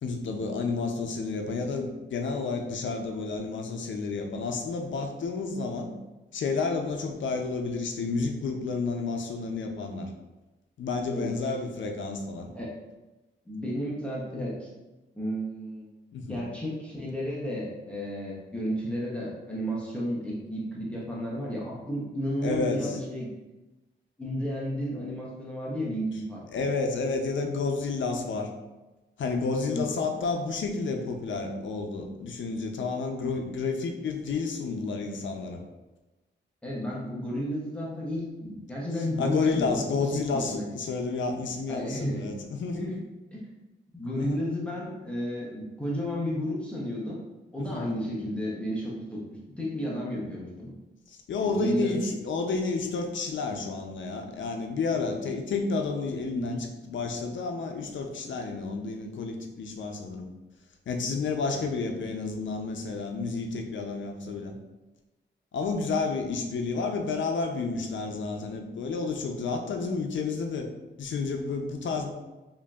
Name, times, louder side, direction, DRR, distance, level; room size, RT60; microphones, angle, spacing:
voice 1, 0.0-5.9 6.3-10.1 10.8-12.5 16.1-16.4 22.4-22.9 26.5-28.5 29.2-35.6 39.2-42.9 44.2-44.4 47.6-47.9 51.1-60.3 60.9-64.5 65.5-70.7 71.0-72.1, left 4 dB, 75° left, 4 dB, 0.5 m, -30 dB
voice 2, 13.5-14.7 15.1-15.9 16.3-23.3 24.2-26.4 29.7-29.9 36.6-40.7 41.7-42.2 42.7-43.0 43.3-43.5 43.9-47.2 47.5-49.2 49.6-50.7 51.4-52.1 56.3-56.6 61.5-61.7, equal, 5° left, -6 dB, 0.7 m, -32 dB
4.9 x 2.6 x 2.3 m, 1.1 s
wide cardioid pair, 180°, 20 cm